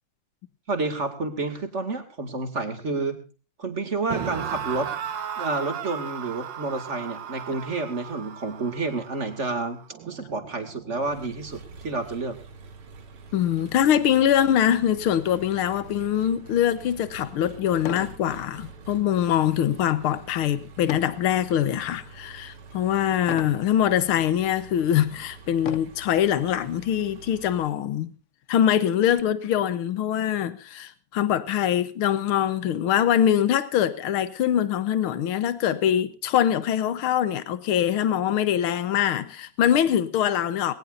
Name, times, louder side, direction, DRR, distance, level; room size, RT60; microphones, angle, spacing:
voice 1, 0.7-3.2 3.6-4.9 5.4-9.8 10.1-12.4, right 3 dB, 35° right, 2.5 m, -29 dB
sound 1, 4.1-11.2, right 8 dB, 60° right, 1.9 m, -36 dB
Engine, 11.0-27.7, right 4 dB, 80° right, 2.9 m, -46 dB
voice 2, 13.3-28.1 28.5-40.7, left 10 dB, 80° left, 2.0 m, -23 dB
sound 2, 16.8-16.9 17.8-18.2 18.7-19.0 20.9-21.2 21.9-22.3 23.3-23.6 24.4-24.5 25.6-26.1 27.1-27.2 27.5-27.6 28.1-29.2, left 8 dB, 60° left, 0.8 m, -36 dB
20.0 x 18.5 x 2.6 m
omnidirectional pair, 2.3 m